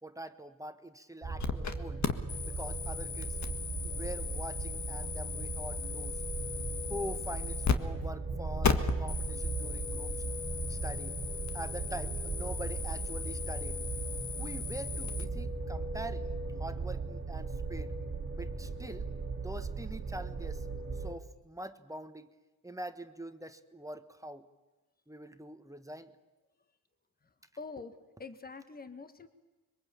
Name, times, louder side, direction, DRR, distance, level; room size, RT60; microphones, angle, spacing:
voice 1, 0.0-2.0 2.5-6.2 6.9-10.2 10.7-11.2 11.5-13.8 14.4-16.3 16.6-17.9 18.3-19.0 19.4-20.7 20.9-22.3 22.6-24.5 25.1-26.1, right 1 dB, 10° right, 9 dB, 1.3 m, -44 dB
sound 1, 1.2-21.1, right 3 dB, 40° right, 2.2 m, -37 dB
sound 2, 1.4-1.7 2.0-7.8 8.0-8.1 8.6-15.2, left 7 dB, 50° left, 1.7 m, -37 dB
voice 2, 27.6-29.3, left 4 dB, 25° left, 10 dB, 1.7 m, -45 dB
25.0 x 22.5 x 8.6 m, 1.1 s
cardioid pair, 75°, 35 cm